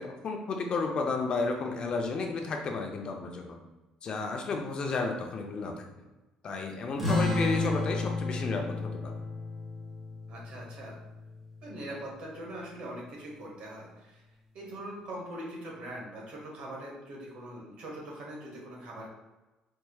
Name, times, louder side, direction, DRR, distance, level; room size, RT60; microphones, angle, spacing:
voice 1, 0.0-3.6 4.0-5.8 6.4-9.1, left 4 dB, 45° left, 3 dB, 0.6 m, -32 dB
sound 1, 7.0-12.0, left 2 dB, 10° right, 1.4 m, -32 dB
voice 2, 7.1-7.5 10.3-11.0 11.6-14.2 14.5-19.1, right 1 dB, 60° right, -3 dB, 1.4 m, -42 dB
4.5 x 3.0 x 2.3 m, 1.1 s
cardioid pair, 115°, 2 cm